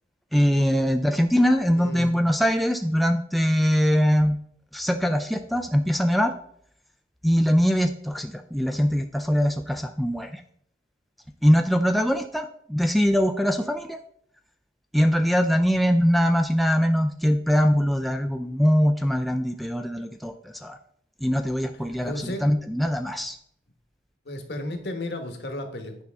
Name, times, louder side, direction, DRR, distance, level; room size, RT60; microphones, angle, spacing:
voice 1, 0.3-4.4 4.7-6.3 7.2-10.3 11.4-14.0 14.9-20.3 20.6-20.8 21.2-22.1 22.4-23.4, equal, ahead, 5 dB, 0.3 m, -22 dB
voice 2, 1.6-2.3 21.7-22.4 24.2-26.0, left 1 dB, 70° left, 6 dB, 1.2 m, -34 dB
9.4 x 5.4 x 3.4 m, 0.67 s
head